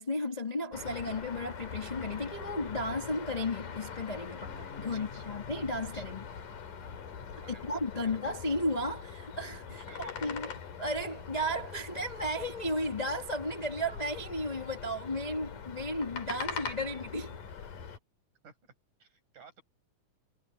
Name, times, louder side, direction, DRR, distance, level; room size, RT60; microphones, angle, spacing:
voice 1, 0.0-6.2 7.5-10.5 10.8-17.4, left 1 dB, 60° left, 0.4 m, -34 dB
sound 1, 0.7-18.0, left 6 dB, 85° left, 4.6 m, -43 dB
voice 2, 4.8-5.4 5.9-6.1 7.4-8.1 9.9-10.3 16.3-16.4 18.4-18.7 19.0-19.6, right 4 dB, 70° right, 8.4 m, -54 dB
omnidirectional pair, 3.6 m